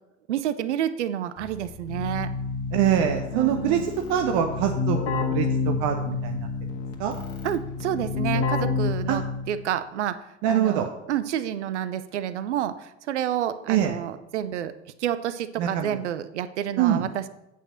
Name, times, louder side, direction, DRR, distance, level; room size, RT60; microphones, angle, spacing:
voice 1, 0.3-2.3 3.3-3.9 7.4-9.2 9.5-14.7 15.0-17.3, right 10 dB, 70° right, 13 dB, 0.7 m, -29 dB
Keyboard (musical), 1.4-9.7, left 4 dB, 40° left, 1.6 m, -29 dB
voice 2, 2.7-6.5 7.0-7.1 9.1-9.2 10.4-10.9 13.7-13.9 15.6-16.0 16.8-17.0, right 9 dB, 50° right, 4 dB, 0.9 m, -24 dB
8.6 x 5.4 x 6.4 m, 0.88 s
figure-of-eight pair, 75°, 36 cm